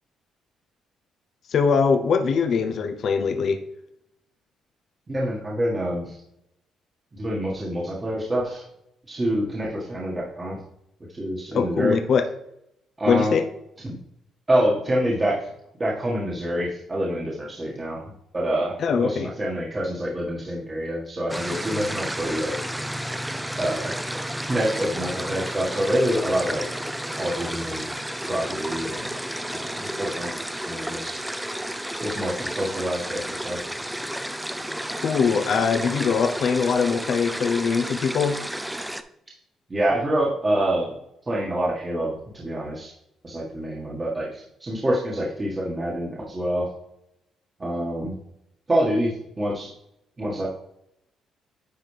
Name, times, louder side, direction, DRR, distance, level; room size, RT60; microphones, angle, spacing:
voice 1, 1.5-3.6 11.5-12.2 13.1-13.4 18.8-19.3 35.0-38.4, left 5 dB, 60° left, 6 dB, 0.7 m, -22 dB
voice 2, 5.1-6.2 7.1-8.6 9.1-10.6 11.1-12.0 13.0-13.4 13.8-14.0 14.5-15.5 15.8-18.0 18.3-22.6 23.6-23.9 24.4-26.6 27.2-27.9 28.3-29.1 29.5-30.3 30.6-31.2 32.0-33.6 39.7-40.9 41.3-42.9 43.2-46.7 47.6-48.1 48.7-49.7 50.2-50.5, right 1 dB, 25° right, -4 dB, 1.7 m, -26 dB
sound 1, 21.3-39.0, equal, 5° right, 0.5 m, -32 dB
10.0 x 4.1 x 3.4 m, 0.78 s
cardioid pair, 90°, 0 cm